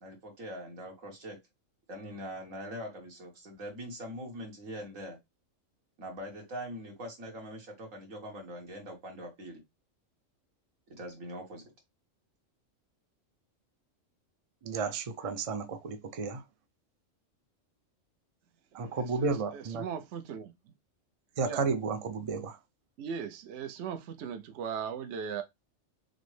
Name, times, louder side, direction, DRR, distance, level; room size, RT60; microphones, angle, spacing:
voice 1, 0.0-1.4 1.9-5.2 6.0-9.6 10.9-11.7, equal, 85° right, 1.8 m, -42 dB
voice 2, 14.6-16.4 18.7-19.9 21.4-22.6, right 4 dB, 45° right, 0.4 m, -32 dB
voice 3, 19.2-20.5 21.4-21.6 23.0-25.4, right 7 dB, 65° right, 0.8 m, -38 dB
6.0 x 2.0 x 3.2 m
omnidirectional pair, 1.3 m